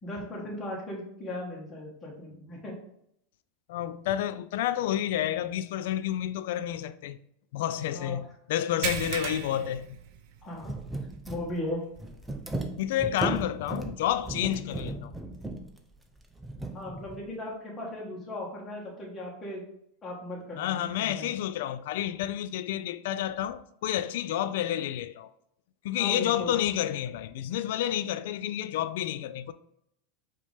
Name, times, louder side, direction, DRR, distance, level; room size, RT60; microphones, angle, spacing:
voice 1, 0.0-2.8 7.9-8.2 10.4-10.7 11.3-11.8 16.7-19.6 20.0-21.3 26.0-26.6, left 1 dB, 25° left, 1.4 m, -37 dB
voice 2, 3.7-7.2 7.5-10.0 12.8-15.1 20.6-25.3 25.8-29.5, left 11 dB, 70° left, 0.3 m, -30 dB
sound 1, 8.8-10.7 11.1-11.3 11.7-11.8 13.5-13.6, right 8 dB, 60° right, 0.5 m, -35 dB
sound 2, 9.6-9.8 10.1-10.2 10.5-17.3, right 2 dB, 10° right, 0.6 m, -36 dB
4.8 x 2.9 x 3.4 m
hypercardioid pair, 100°, 0 cm